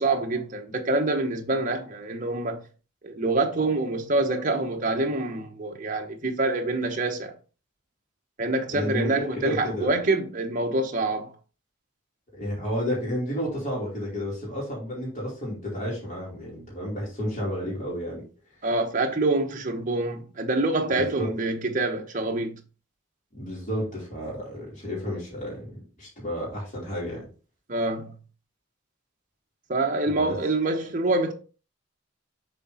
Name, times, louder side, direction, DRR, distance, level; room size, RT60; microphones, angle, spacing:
voice 1, 0.0-2.6 3.0-7.3 8.4-11.3 18.6-22.6 27.7-28.1 29.7-31.3, right 2 dB, 40° right, 1.0 m, -26 dB
voice 2, 8.7-9.9 12.3-18.2 20.9-21.3 23.3-27.3 30.0-30.3, equal, 40° left, 2.8 m, -31 dB
6.8 x 4.1 x 3.9 m
head